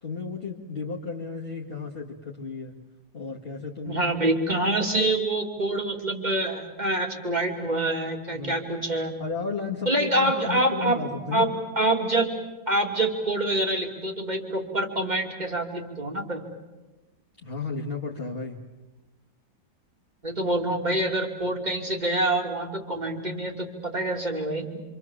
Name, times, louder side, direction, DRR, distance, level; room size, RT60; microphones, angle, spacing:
voice 1, 0.0-2.8 3.1-4.1 8.3-8.5 9.2-11.5 17.4-18.6, left 5 dB, 30° left, -4 dB, 2.1 m, -33 dB
voice 2, 3.8-9.1 9.9-11.0 11.3-11.5 11.8-12.3 12.7-16.4 20.2-24.8, right 1 dB, 25° right, 2 dB, 2.9 m, -26 dB
27.0 x 26.0 x 7.4 m, 1.1 s
omnidirectional pair, 2.0 m